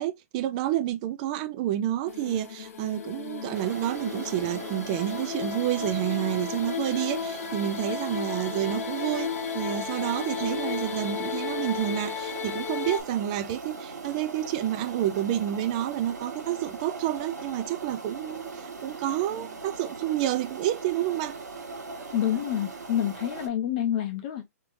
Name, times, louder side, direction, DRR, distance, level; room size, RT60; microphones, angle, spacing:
voice 1, 0.0-21.4, right 12 dB, 25° right, 0.3 m, -29 dB
sound 1, 2.1-13.0, left 7 dB, 60° left, 0.8 m, -34 dB
sound 2, 3.5-23.5, right 4 dB, 85° right, 1.6 m, -40 dB
voice 2, 22.1-24.5, left 10 dB, 30° left, 0.6 m, -28 dB
3.6 x 2.8 x 2.5 m
hypercardioid pair, 155°, 9 cm